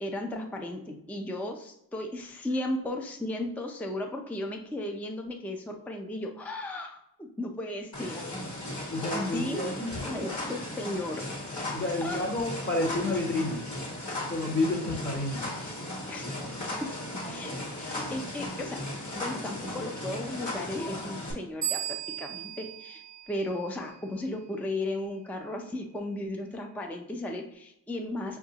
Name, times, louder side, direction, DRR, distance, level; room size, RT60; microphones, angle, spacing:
voice 1, 0.0-8.2 9.1-9.7 10.0-11.3 12.0-12.2 16.1-16.7 17.3-21.8 22.2-28.4, left 1 dB, 5° left, 3 dB, 0.5 m, -35 dB
sound 1, 7.9-21.3, left 1 dB, 50° left, 1.3 m, -36 dB
voice 2, 8.9-10.3 11.7-13.6 14.3-15.5, left 2 dB, 25° left, -2 dB, 0.8 m, -30 dB
sound 2, 21.6-24.1, right 11 dB, 50° right, 0.6 m, -36 dB
4.9 x 2.3 x 2.8 m, 0.79 s
cardioid pair, 75°, 37 cm